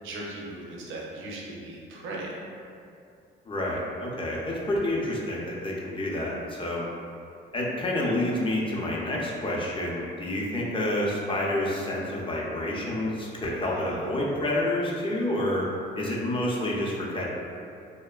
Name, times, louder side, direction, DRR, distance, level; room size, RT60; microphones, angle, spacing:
voice 1, 0.0-2.4 13.7-14.0, right 2 dB, 80° right, -3 dB, 0.5 m, -38 dB
voice 2, 3.5-6.9 7.5-15.7 15.9-17.3, left 1 dB, 25° left, -4 dB, 0.5 m, -28 dB
2.8 x 2.1 x 2.3 m, 2.5 s
cardioid pair, 90°, 20 cm